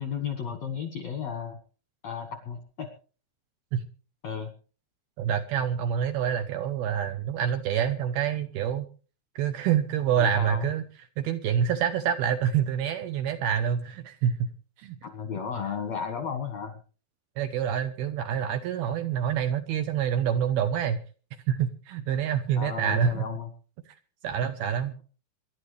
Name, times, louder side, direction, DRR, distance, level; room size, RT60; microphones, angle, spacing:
voice 1, 0.0-1.6 2.0-2.9 4.2-4.5 10.2-10.7 15.0-16.8 22.6-23.5, left 7 dB, 65° left, 5 dB, 1.7 m, -33 dB
voice 2, 5.2-8.9 9.4-10.8 11.2-14.5 14.8-15.0 17.4-21.0 21.5-23.2 23.9-24.0 24.2-24.9, right 9 dB, 75° right, 7 dB, 2.4 m, -27 dB
26.0 x 11.5 x 3.3 m, 0.38 s
omnidirectional pair, 5.3 m